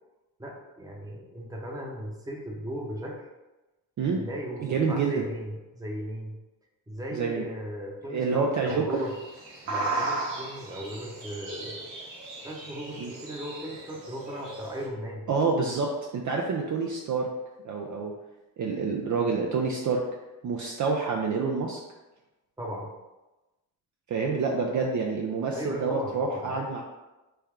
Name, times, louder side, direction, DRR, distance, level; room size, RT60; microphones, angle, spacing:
voice 1, 0.4-3.3 4.1-6.3 6.9-9.1 9.6-11.9 12.4-15.3 22.6-22.9 25.5-26.7, equal, 10° right, -1 dB, 0.8 m, -37 dB
voice 2, 4.6-5.1 7.1-7.5 8.1-8.9 13.0-13.1 15.3-17.3 17.6-18.1 18.6-20.0 20.4-21.8 24.1-26.8, right 4 dB, 45° right, 0 dB, 0.5 m, -27 dB
sound 1, 8.9-14.9, right 2 dB, 70° right, 0.9 m, -36 dB
3.4 x 2.2 x 3.5 m, 1.1 s
supercardioid pair, 60°, 44 cm